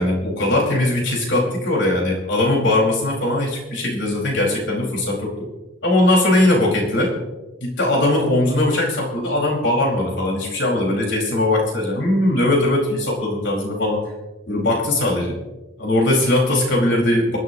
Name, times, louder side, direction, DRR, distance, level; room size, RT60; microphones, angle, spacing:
voice 1, 0.0-5.3 5.8-7.1 7.6-14.0 14.5-15.3 15.8-17.4, left 1 dB, 60° left, -1 dB, 4.8 m, -20 dB
26.0 x 12.0 x 2.9 m, 1.1 s
head